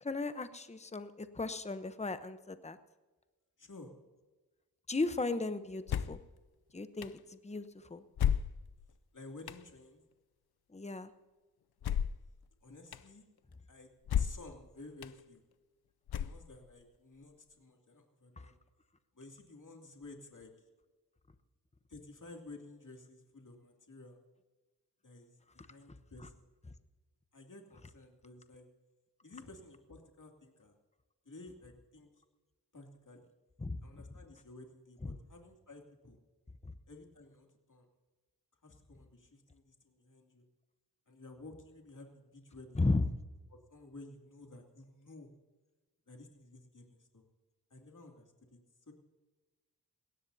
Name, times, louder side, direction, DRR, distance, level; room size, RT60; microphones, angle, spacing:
voice 1, 0.0-2.8 4.9-6.2 6.7-8.0 10.7-11.1 18.4-18.5 33.6-33.8 35.0-35.2 36.6-36.7 42.7-43.1, left 3 dB, 15° left, 11 dB, 0.9 m, -35 dB
voice 2, 3.6-3.9 9.1-10.0 12.6-13.2 13.7-13.9 14.2-15.4 16.2-18.6 19.1-20.5 21.9-24.2 25.0-26.5 27.3-28.7 29.2-30.8 31.2-32.1 32.7-33.3 33.8-36.2 36.9-37.9 38.6-40.4 41.1-42.8 43.5-45.3 46.1-47.2 47.7-48.6 48.9-49.0, left 2 dB, 50° left, 2 dB, 2.7 m, -53 dB
sound 1, 5.9-6.3 7.0-7.1 8.2-8.9 9.5-9.6 11.8-12.3 12.9-13.0 14.1-14.5 15.0-15.1 16.1-16.7, left 9 dB, 75° left, 0.6 m, -32 dB
21.0 x 17.5 x 2.8 m, 1.2 s
wide cardioid pair, 65°, 38 cm